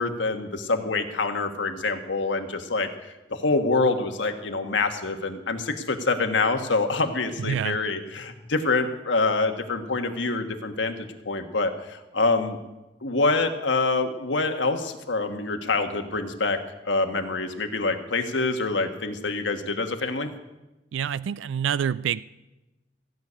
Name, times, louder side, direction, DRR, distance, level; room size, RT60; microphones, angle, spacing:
voice 1, 0.0-12.6 13.0-16.6 16.8-20.3, left 3 dB, 80° left, 6 dB, 1.4 m, -26 dB
voice 2, 7.4-7.8 20.9-22.2, right 8 dB, 90° right, 18 dB, 0.4 m, -27 dB
15.5 x 6.6 x 9.6 m, 1.0 s
head